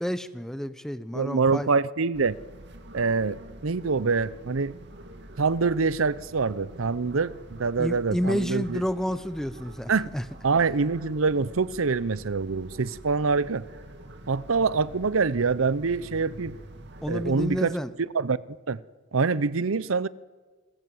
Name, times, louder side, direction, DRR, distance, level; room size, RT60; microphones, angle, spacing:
voice 1, 0.0-1.7 7.8-10.2 17.0-17.9, equal, ahead, 0.9 m, -30 dB
voice 2, 1.1-2.4 2.9-4.7 5.4-8.8 9.9-10.1 10.4-13.6 14.3-16.5 17.1-18.4 18.7-18.8 19.1-20.1, right 4 dB, 90° right, 0.7 m, -25 dB
sound 1, 2.1-17.6, right 1 dB, 60° right, 2.5 m, -46 dB
28.0 x 20.0 x 7.8 m
head